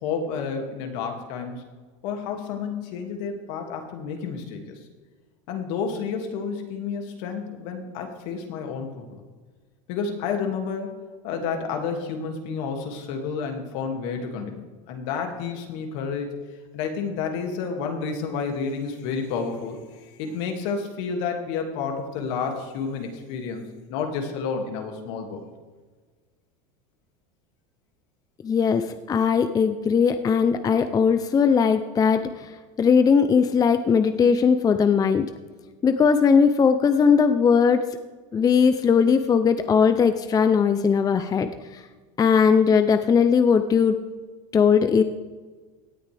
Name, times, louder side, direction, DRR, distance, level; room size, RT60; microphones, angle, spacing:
voice 1, 0.0-1.6 2.0-4.8 5.5-9.2 9.9-10.9 11.2-16.4 16.7-23.6 23.9-25.4, left 5 dB, 65° left, 3 dB, 2.4 m, -30 dB
voice 2, 28.4-32.5 32.8-35.3 35.8-37.8 38.3-41.5 41.7-41.8 42.2-44.0 44.5-45.0, left 6 dB, 20° left, 9 dB, 0.6 m, -19 dB
17.5 x 9.4 x 3.4 m, 1.4 s
supercardioid pair, 115°, 17 cm